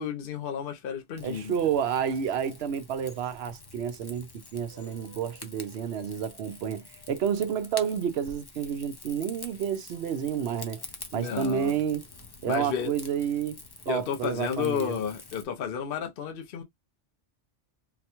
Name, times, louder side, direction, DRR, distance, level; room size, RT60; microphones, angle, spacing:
voice 1, 0.0-1.5 11.1-11.8 12.4-12.9 13.9-16.6, left 7 dB, 55° left, 0.8 m, -32 dB
Rain / Fire, 1.2-15.5, left 3 dB, 30° left, 0.5 m, -47 dB
voice 2, 1.2-4.3 4.5-10.8 11.1-12.0 12.4-13.6 13.9-14.9, right 8 dB, 65° right, 0.8 m, -30 dB
4.0 x 2.2 x 2.9 m
omnidirectional pair, 1.2 m